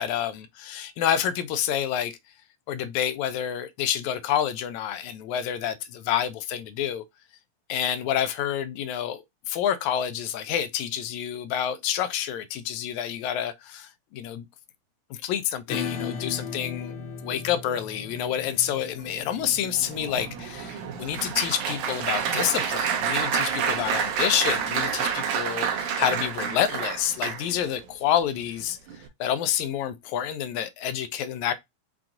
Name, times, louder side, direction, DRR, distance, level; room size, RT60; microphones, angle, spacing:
voice 1, 0.0-2.1 2.7-7.0 7.7-14.5 15.1-17.0 17.2-28.8 29.2-31.5, left 10 dB, 80° left, 1.8 m, -28 dB
Acoustic guitar / Strum, 15.7-22.9, left 6 dB, 65° left, 1.5 m, -38 dB
Applause, 19.4-27.7 28.4-28.6 28.9-29.1, right 7 dB, 75° right, 2.1 m, -28 dB
5.8 x 2.3 x 3.7 m
omnidirectional pair, 3.6 m